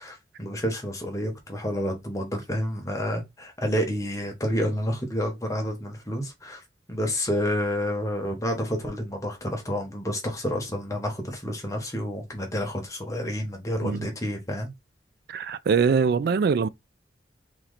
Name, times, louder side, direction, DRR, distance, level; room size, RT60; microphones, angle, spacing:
voice 1, 0.0-6.6 6.9-14.7, equal, 20° left, 1.1 m, -29 dB
voice 2, 15.3-16.7, right 5 dB, 60° right, 0.3 m, -23 dB
3.2 x 2.9 x 4.0 m
head